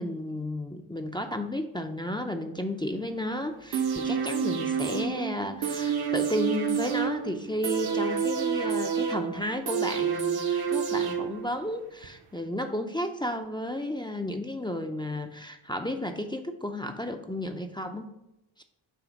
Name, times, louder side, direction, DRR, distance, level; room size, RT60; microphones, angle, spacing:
voice 1, 0.0-18.1 18.6-18.7, left 1 dB, 10° left, 5 dB, 0.5 m, -33 dB
sound 1, 3.7-11.7 12.0-12.1, right 7 dB, 50° right, 0.8 m, -29 dB
5.9 x 3.4 x 5.2 m, 0.86 s
supercardioid pair, 45°, 49 cm